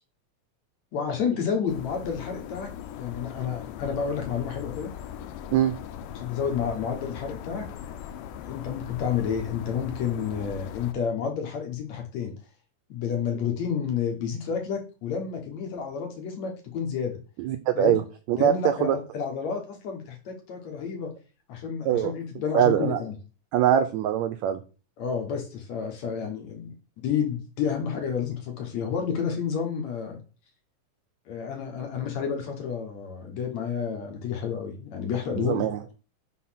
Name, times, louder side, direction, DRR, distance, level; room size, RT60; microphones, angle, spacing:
voice 1, 0.9-2.7 3.0-4.9 6.2-7.7 8.4-12.3 12.9-17.2 17.7-18.0 18.4-21.1 21.5-23.1 25.0-26.7 27.0-30.2 31.3-35.6, left 7 dB, 60° left, 3 dB, 2.5 m, -30 dB
sound 1, 1.7-10.9, left 9 dB, 85° left, 2.3 m, -39 dB
voice 2, 17.4-18.0 18.3-19.0 21.8-22.1 22.5-23.0 23.5-24.6 35.4-35.8, right 11 dB, 90° right, 9 dB, 1.5 m, -23 dB
6.5 x 4.2 x 5.8 m, 0.36 s
omnidirectional pair, 3.8 m